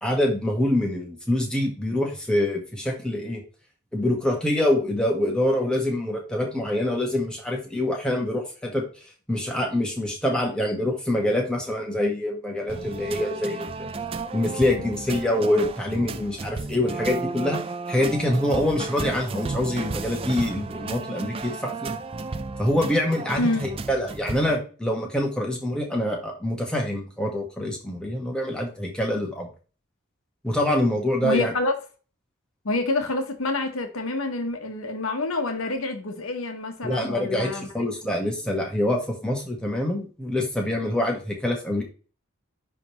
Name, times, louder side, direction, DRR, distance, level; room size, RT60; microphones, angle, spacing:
voice 1, 0.0-3.4 3.9-8.9 9.3-13.9 14.3-17.6 17.9-21.9 22.6-29.5 30.4-31.5 36.8-41.8, left 1 dB, 5° left, 1.5 m, -25 dB
sound 1, 12.7-24.6, right 3 dB, 25° right, 0.4 m, -33 dB
voice 2, 31.2-31.7 32.6-37.7, left 2 dB, 85° left, 1.1 m, -27 dB
10.0 x 3.5 x 3.1 m
head